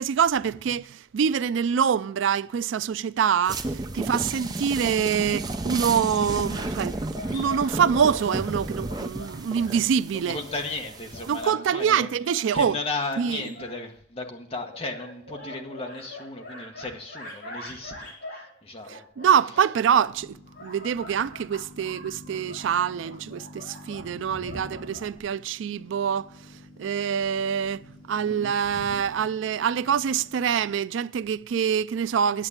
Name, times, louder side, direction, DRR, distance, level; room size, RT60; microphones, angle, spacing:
voice 1, 0.0-7.0 7.3-10.4 11.3-12.8 13.2-13.4 18.9-26.3 26.8-27.8 28.1-32.5, right 7 dB, 80° right, 0.3 m, -25 dB
sound 1, 3.5-11.5, right 2 dB, 20° right, 0.5 m, -33 dB
sound 2, 6.5-8.5 8.9-9.8 10.2-13.9 14.6-18.5 18.8-20.0 20.5-25.2, left 1 dB, 55° left, 5.4 m, -43 dB
voice 2, 10.1-12.1 12.5-19.1 24.3-24.8 28.1-28.4 28.7-28.9, left 3 dB, 30° left, 1.2 m, -35 dB
sound 3, 20.1-30.7, left 2 dB, 80° left, 4.4 m, -49 dB
9.0 x 7.8 x 7.3 m
head